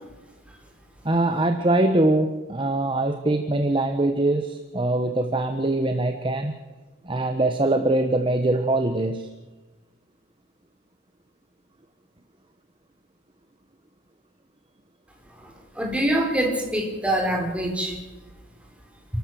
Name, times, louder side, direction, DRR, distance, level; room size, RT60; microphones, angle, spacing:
voice 1, 1.0-6.5 7.0-9.3, right 2 dB, 25° right, 6 dB, 1.1 m, -23 dB
voice 2, 15.8-18.0, right 1 dB, 5° right, 1 dB, 4.1 m, -24 dB
28.5 x 13.0 x 7.7 m, 1.2 s
head